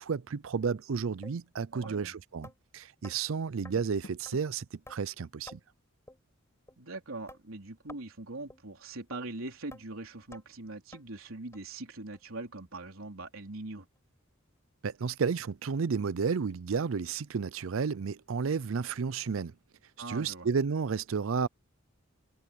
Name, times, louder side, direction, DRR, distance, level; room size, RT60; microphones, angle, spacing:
voice 1, 0.0-5.6 14.8-19.5 20.1-21.5, right 5 dB, 70° right, 0.5 m, -32 dB
sound 1, 0.6-0.8 1.2-1.4 1.8-1.9 2.4-2.6 3.0-3.2 3.6-3.8 4.3-4.4 4.9-5.0 5.5-5.6 6.1-6.2 6.7-6.8 7.3-7.4 7.9-8.1 8.5-8.6 9.1-9.2 9.7-9.8 10.3-10.4 10.9-11.0 11.5-11.6 12.1-12.2 12.7-12.8 13.3-13.4, left 1 dB, 15° left, 4.9 m, -50 dB
voice 2, 1.7-2.1 6.8-13.9 20.0-20.5, right 2 dB, 85° right, 3.5 m, -42 dB
Door, 3.5-4.7, left 1 dB, 80° left, 2.1 m, -52 dB
head